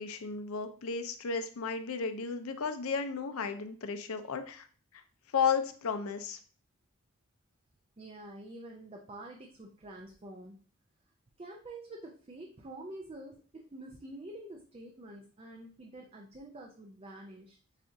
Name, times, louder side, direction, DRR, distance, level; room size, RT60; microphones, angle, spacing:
voice 1, 0.0-4.7 4.9-5.0 5.3-6.4, left 6 dB, 75° left, 8 dB, 0.5 m, -33 dB
voice 2, 8.0-10.6 11.4-17.6, right 1 dB, 25° right, 1 dB, 0.4 m, -47 dB
7.4 x 2.5 x 2.6 m, 0.42 s
head